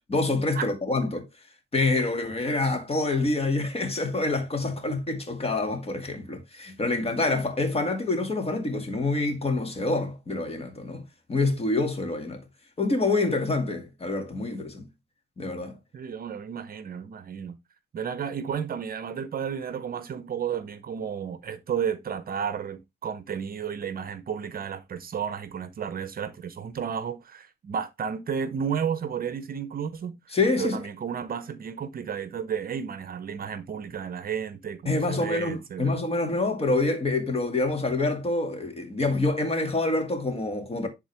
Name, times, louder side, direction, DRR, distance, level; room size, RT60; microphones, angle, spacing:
voice 1, 0.1-1.3 1.7-11.0 11.3-12.4 12.8-14.8 15.4-15.8 30.3-30.8 34.9-40.9, left 2 dB, 30° left, 2.3 m, -26 dB
voice 2, 15.9-17.6 17.9-30.1 30.6-35.9, right 7 dB, 45° right, 0.8 m, -32 dB
10.5 x 3.8 x 3.4 m
cardioid pair, 90°, 20 cm